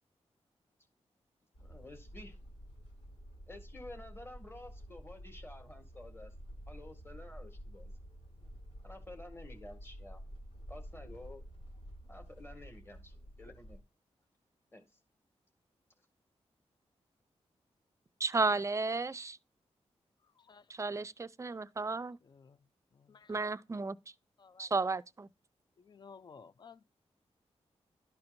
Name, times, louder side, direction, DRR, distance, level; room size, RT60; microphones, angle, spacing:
sound 1, 1.5-13.8, equal, 80° left, 4.4 m, -50 dB
voice 1, 1.6-2.4 3.5-6.3 6.7-7.9 8.8-10.2 10.7-11.5 12.1-13.8 14.7-14.8, left 1 dB, 20° left, 1.8 m, -51 dB
voice 2, 18.2-19.4 20.7-22.2 23.3-24.0 24.6-25.3, right 3 dB, 25° right, 0.4 m, -33 dB
voice 3, 20.2-20.7 22.2-22.7 22.9-23.4 24.4-24.7 25.8-26.9, left 5 dB, 40° left, 0.4 m, -56 dB
12.0 x 4.3 x 2.6 m
wide cardioid pair, 100°, 11 cm